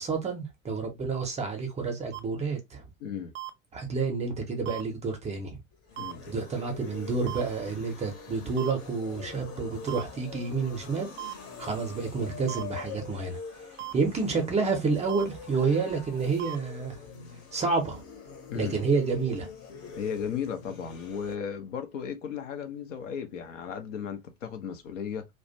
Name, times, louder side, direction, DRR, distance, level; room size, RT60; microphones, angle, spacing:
voice 1, 0.0-2.8 3.7-5.6 6.3-13.4 13.9-17.0 17.5-18.0 18.5-19.5, right 4 dB, 15° right, 0.6 m, -29 dB
sound 1, 2.1-2.2 3.3-3.5 4.6-4.8 6.0-6.1 7.3-7.4 8.6-8.7 9.9-10.0 11.2-11.3 12.5-12.6 13.8-13.9 15.1-15.2 16.4-16.6, right 17 dB, 65° right, 0.5 m, -37 dB
voice 2, 3.0-3.3 6.0-6.3 13.7-13.8 18.5-18.8 19.9-25.3, left 7 dB, 60° left, 0.6 m, -35 dB
sound 2, 5.7-21.4, left 5 dB, 35° left, 0.8 m, -44 dB
2.4 x 2.2 x 2.6 m
figure-of-eight pair, 75°, 41 cm